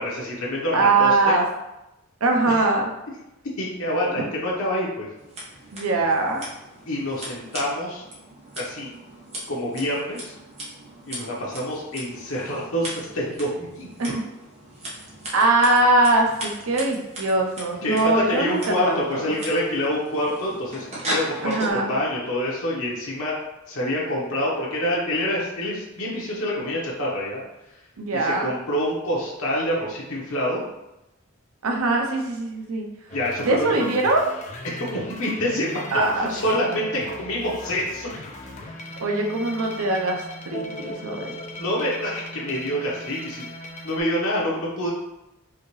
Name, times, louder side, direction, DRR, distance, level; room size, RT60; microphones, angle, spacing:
voice 1, 0.0-1.4 3.6-5.1 6.9-8.0 8.6-8.9 9.5-10.3 11.0-14.1 17.8-23.4 23.7-27.4 28.1-30.6 33.1-33.7 34.6-36.0 36.3-38.1 41.6-43.5 43.8-44.9, left 1 dB, 85° left, -5 dB, 1.0 m, -26 dB
voice 2, 0.7-1.4 2.2-2.9 5.7-6.4 14.0-14.2 15.3-19.2 21.4-21.9 28.0-28.5 31.6-32.8 33.4-34.2 35.9-36.3 39.0-41.4, right 2 dB, 80° right, 1 dB, 0.7 m, -22 dB
Scissors, 5.2-21.7, right 1 dB, 30° right, 1.2 m, -38 dB
sound 1, 33.1-44.0, left 1 dB, 35° left, 0.6 m, -38 dB
4.9 x 2.9 x 3.1 m, 0.93 s
head